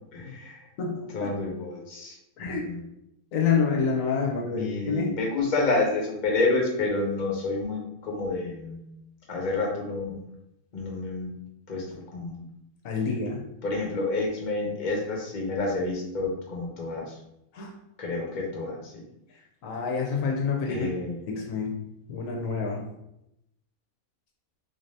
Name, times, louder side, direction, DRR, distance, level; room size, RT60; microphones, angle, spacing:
voice 1, 0.1-0.7 1.1-2.9 4.5-8.8 9.3-10.3 10.7-11.3 11.7-12.4 13.6-17.2 18.0-19.0 20.7-21.2, left 3 dB, 40° left, -1 dB, 0.9 m, -29 dB
voice 2, 0.8-1.3 2.4-2.7 3.3-5.2 12.8-13.5 17.5-17.7 19.6-20.9 21.3-22.9, left 5 dB, 75° left, 1 dB, 1.0 m, -28 dB
3.8 x 2.6 x 3.2 m, 0.83 s
omnidirectional pair, 1.5 m